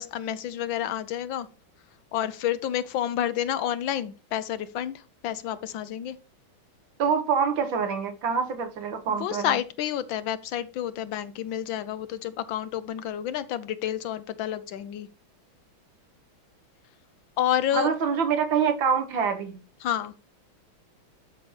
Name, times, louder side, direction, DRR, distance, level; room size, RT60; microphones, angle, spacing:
voice 1, 0.0-1.5 2.1-6.2 9.1-15.1 17.4-17.9 19.8-20.1, left 11 dB, 75° left, 1.3 m, -29 dB
voice 2, 7.0-9.6 17.7-19.6, right 6 dB, 65° right, 1.9 m, -25 dB
12.0 x 5.8 x 3.2 m
omnidirectional pair, 2.3 m